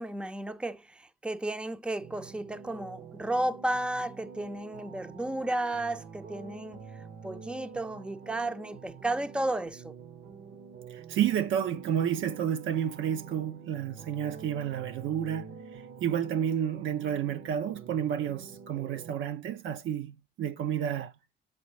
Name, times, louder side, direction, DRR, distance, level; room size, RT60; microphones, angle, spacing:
voice 1, 0.0-6.8 7.2-10.0, right 1 dB, 5° right, 0.6 m, -33 dB
sound 1, 2.0-19.2, right 6 dB, 60° right, 1.0 m, -47 dB
voice 2, 10.9-21.1, right 9 dB, 80° right, 0.8 m, -31 dB
7.4 x 4.1 x 4.8 m
cardioid pair, 90°, 20 cm